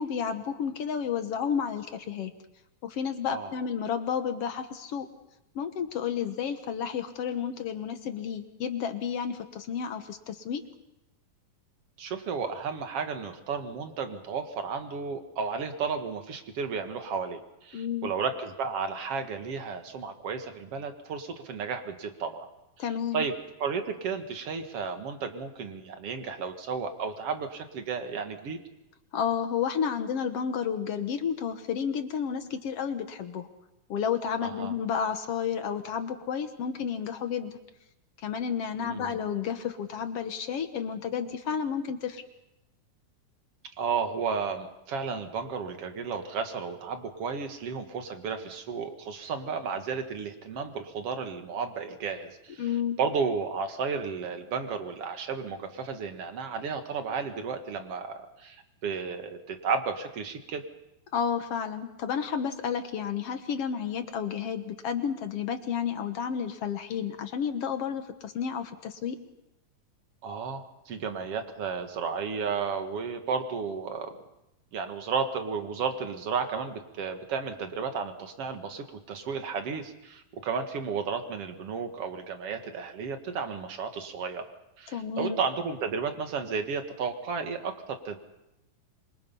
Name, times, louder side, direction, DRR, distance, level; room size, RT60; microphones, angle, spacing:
voice 1, 0.0-2.3 2.8-5.1 5.6-10.6 17.7-18.1 22.8-23.2 29.1-33.5 33.9-37.5 38.2-42.2 52.6-53.0 61.1-69.2 84.9-85.4, left 7 dB, 60° left, 8 dB, 1.7 m, -31 dB
voice 2, 12.0-22.5 23.1-23.3 23.6-28.6 34.4-34.7 38.8-39.2 43.8-52.7 53.0-60.6 70.2-74.2 74.7-84.5 84.8-88.2, right 5 dB, 50° right, 6 dB, 2.4 m, -33 dB
27.0 x 23.5 x 5.6 m, 0.89 s
omnidirectional pair, 4.1 m